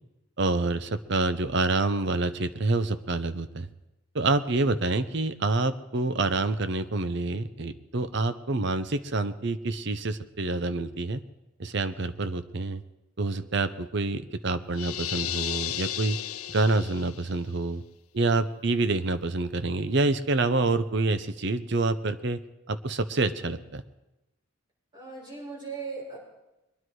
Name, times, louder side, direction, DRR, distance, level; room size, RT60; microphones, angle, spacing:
voice 1, 0.4-3.7 4.1-11.2 11.6-12.8 13.2-16.2 16.5-17.8 18.1-22.4 22.7-23.8, right 3 dB, 55° right, 11 dB, 0.7 m, -27 dB
sound 1, 14.7-17.3, left 12 dB, 90° left, 0.7 m, -34 dB
voice 2, 24.9-26.2, right 4 dB, 20° right, -7 dB, 7.0 m, -38 dB
23.0 x 10.0 x 4.8 m, 0.99 s
head